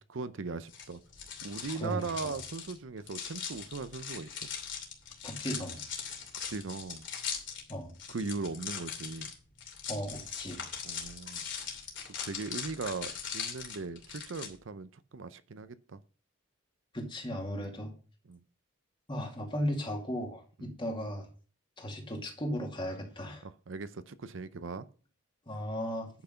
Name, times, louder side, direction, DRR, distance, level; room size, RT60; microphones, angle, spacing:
voice 1, 0.1-1.0 1.4-4.3 6.5-7.0 8.1-9.3 10.8-11.4 12.2-16.0 18.2-18.4 20.6-20.7 23.4-24.9, right 4 dB, 70° right, 0.6 m, -39 dB
sound 1, 0.7-14.5, left 7 dB, 60° left, 2.8 m, -40 dB
voice 2, 1.7-2.3 5.2-5.8 7.7-7.9 9.9-10.6 16.9-17.9 19.1-21.3 21.8-23.4 25.5-26.1, equal, 25° left, 2.3 m, -36 dB
10.5 x 6.0 x 5.7 m
head